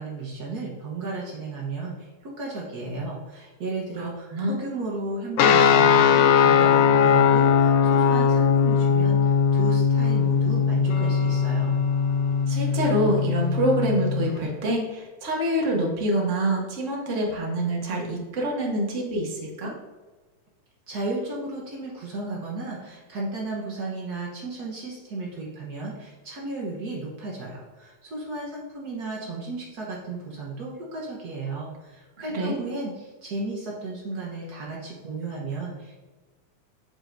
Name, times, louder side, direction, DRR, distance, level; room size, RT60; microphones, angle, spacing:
voice 1, 0.0-11.8 20.9-36.0, right 3 dB, 85° right, -4 dB, 0.8 m, -34 dB
voice 2, 4.0-4.6 12.5-19.7 32.2-32.6, right 1 dB, 50° right, -1 dB, 0.9 m, -26 dB
sound 1, 5.4-14.3, left 7 dB, 80° left, 1.5 m, -20 dB
7.6 x 7.1 x 2.6 m, 1.3 s
omnidirectional pair, 3.4 m